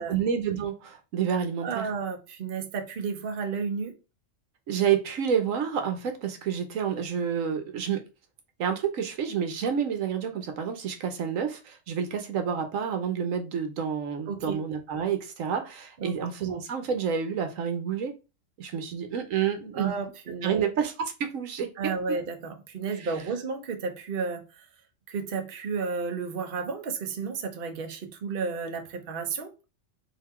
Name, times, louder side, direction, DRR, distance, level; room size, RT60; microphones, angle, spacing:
voice 1, 0.0-1.9 4.7-8.0 8.6-18.1 18.6-19.9 20.4-21.7 22.9-23.1, right 7 dB, 85° right, 1.2 m, -29 dB
voice 2, 1.6-3.9 14.3-14.6 16.0-16.3 19.7-20.7 21.8-24.4 25.1-29.5, right 5 dB, 50° right, 0.9 m, -32 dB
4.0 x 2.9 x 4.3 m
omnidirectional pair, 1.3 m